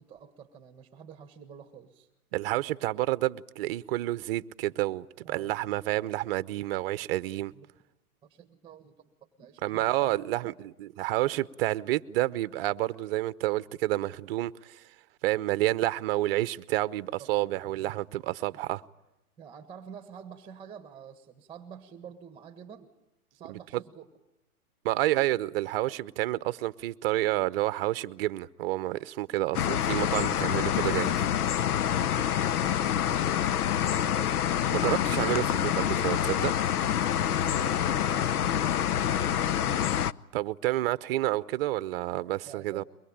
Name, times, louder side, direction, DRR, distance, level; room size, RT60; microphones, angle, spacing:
voice 1, 0.0-2.1 5.2-5.7 7.5-7.7 8.2-9.1 9.4-10.2 10.4-10.6 17.2-17.3 18.5-18.6 19.4-22.9 23.3-24.1 32.0-32.4 32.7-34.4 37.2-39.9 42.4-42.8, right 8 dB, 10° right, 1.5 m, -48 dB
voice 2, 2.3-7.5 9.6-14.8 15.2-18.8 23.5-23.8 24.8-31.2 34.7-36.5 40.3-42.8, right 16 dB, 40° right, 0.8 m, -29 dB
sound 1, 29.5-40.1, left 10 dB, 80° left, 0.8 m, -27 dB
23.5 x 21.5 x 8.7 m
hypercardioid pair, 140°, 45 cm